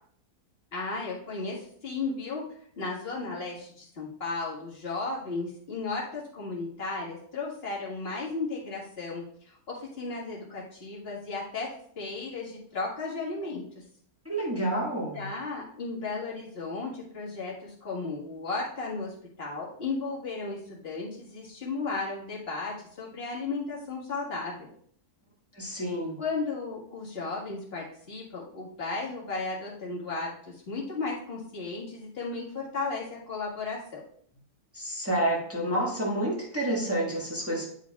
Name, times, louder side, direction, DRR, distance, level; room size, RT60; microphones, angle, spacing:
voice 1, 0.7-2.5 2.8-11.7 12.0-13.8 15.1-24.7 26.2-34.0, left 3 dB, 40° left, -5 dB, 2.0 m, -35 dB
voice 2, 14.2-15.3 25.5-26.2 34.7-37.7, right 1 dB, 10° right, -4 dB, 1.4 m, -29 dB
9.8 x 5.1 x 2.4 m, 0.62 s
omnidirectional pair, 1.6 m